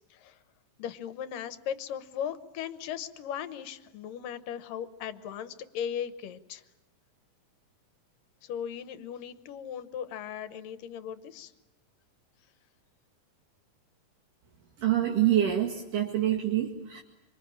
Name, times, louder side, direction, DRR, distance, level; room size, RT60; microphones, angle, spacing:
voice 1, 0.8-6.6 8.4-11.5, left 9 dB, 75° left, 12 dB, 2.6 m, -37 dB
voice 2, 14.8-17.0, right 11 dB, 70° right, 1 dB, 3.5 m, -26 dB
26.0 x 25.5 x 8.7 m, 0.97 s
omnidirectional pair, 4.0 m